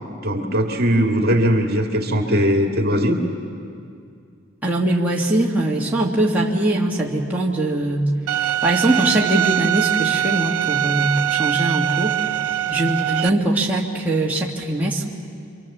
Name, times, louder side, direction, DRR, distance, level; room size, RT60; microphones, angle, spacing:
voice 1, 0.2-3.2, equal, 45° right, 2 dB, 2.2 m, -19 dB
voice 2, 4.6-8.1 8.6-12.1 12.7-15.0, right 1 dB, 10° right, -4 dB, 1.7 m, -21 dB
Bowed string instrument, 8.3-13.3, right 12 dB, 85° right, 0.6 m, -22 dB
27.5 x 24.5 x 7.2 m, 2.3 s
head